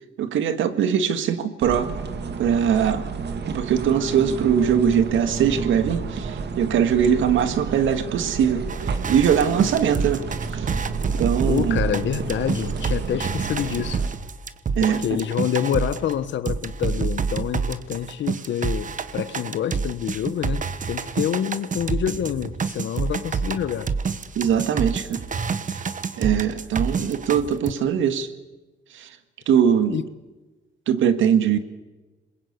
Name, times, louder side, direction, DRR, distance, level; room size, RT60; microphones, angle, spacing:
voice 1, 0.2-1.9 2.4-3.0 3.5-8.7 9.1-10.8 11.2-11.8 14.8-15.0 24.4-25.2 25.7-25.8 26.2-28.3 28.9-29.2 29.5-30.0 30.9-31.6, right 8 dB, 80° right, 1.9 m, -21 dB
sound 1, 1.6-14.1, right 5 dB, 60° right, 2.1 m, -31 dB
sound 2, 8.7-16.1 16.5-27.7, right 5 dB, 40° right, 1.3 m, -28 dB
voice 2, 11.4-14.0 14.8-23.9 29.9-30.0, left 9 dB, 65° left, 1.3 m, -27 dB
26.0 x 21.5 x 8.3 m
cardioid pair, 90°, 20 cm